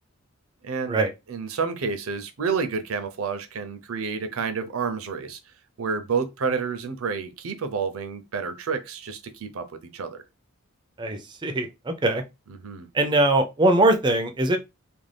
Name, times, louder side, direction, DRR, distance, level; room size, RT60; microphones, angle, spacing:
voice 1, 0.6-1.0 1.3-5.4 5.8-10.2 12.5-12.9, right 5 dB, 70° right, 0.5 m, -29 dB
voice 2, 11.0-12.2 12.9-14.6, right 2 dB, 20° right, 0.4 m, -21 dB
2.5 x 2.2 x 3.2 m
head